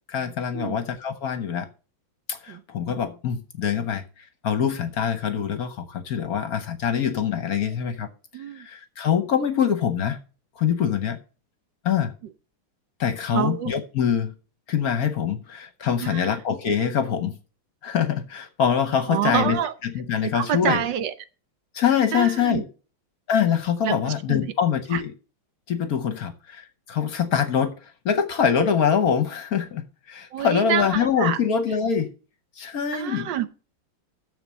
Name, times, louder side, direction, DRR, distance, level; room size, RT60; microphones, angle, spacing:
voice 1, 0.1-1.7 2.3-8.1 8.6-10.2 10.6-11.2 11.8-12.1 13.0-14.3 14.7-17.4 17.8-20.8 21.7-22.6 23.3-25.1 25.7-27.7 28.0-29.8 30.1-32.1 32.6-33.3, left 7 dB, 55° left, 1.2 m, -24 dB
voice 2, 8.3-8.7 13.3-13.7 16.0-16.3 19.1-19.7 20.2-21.1 22.1-22.6 23.8-24.4 24.9-25.0 30.3-31.4 32.9-33.6, right 10 dB, 70° right, 1.3 m, -27 dB
7.1 x 6.9 x 7.4 m
omnidirectional pair, 2.2 m